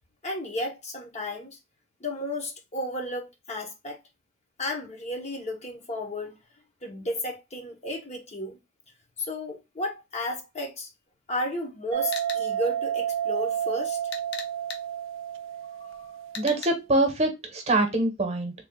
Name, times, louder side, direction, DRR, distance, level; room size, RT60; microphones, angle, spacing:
voice 1, 0.2-1.6 2.0-4.0 4.6-6.4 6.8-8.6 9.2-10.9 11.3-14.0 15.8-16.0, left 1 dB, 35° left, 0.9 m, -33 dB
sound 1, 11.9-16.7, right 10 dB, 90° right, 0.4 m, -30 dB
sound 2, 12.1-12.4 14.1-14.8 16.3-16.7, left 6 dB, 60° left, 0.7 m, -37 dB
voice 2, 16.4-18.5, right 2 dB, 35° right, 1.0 m, -24 dB
3.3 x 2.4 x 3.6 m
head